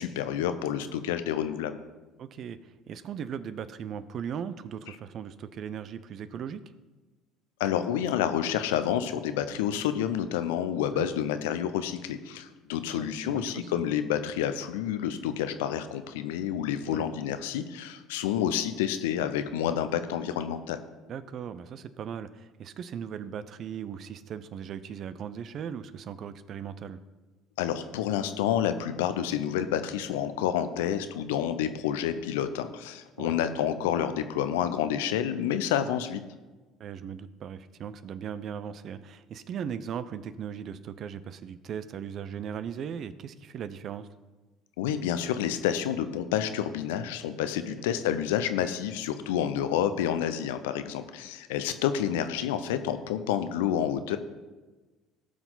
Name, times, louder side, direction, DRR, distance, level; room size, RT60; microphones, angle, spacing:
voice 1, 0.0-1.8 7.6-20.8 27.6-36.2 44.8-54.2, left 9 dB, 75° left, 10 dB, 0.7 m, -29 dB
voice 2, 2.2-6.6 10.9-11.1 12.9-13.7 16.9-17.1 21.1-27.0 33.2-33.4 36.8-44.1, right 8 dB, 50° right, 14 dB, 0.6 m, -38 dB
17.5 x 6.0 x 3.9 m, 1.2 s
hypercardioid pair, 60°, 0 cm